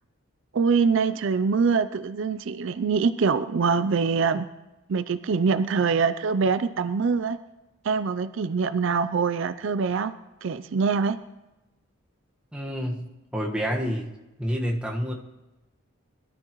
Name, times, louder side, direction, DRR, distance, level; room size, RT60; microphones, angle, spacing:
voice 1, 0.5-4.5 4.9-7.4 7.8-10.1 10.4-11.2, right 5 dB, 65° right, 13 dB, 0.4 m, -24 dB
voice 2, 12.5-13.1 13.3-14.1 14.4-15.1, equal, 5° right, -1 dB, 1.4 m, -28 dB
22.0 x 12.5 x 3.0 m, 1.0 s
head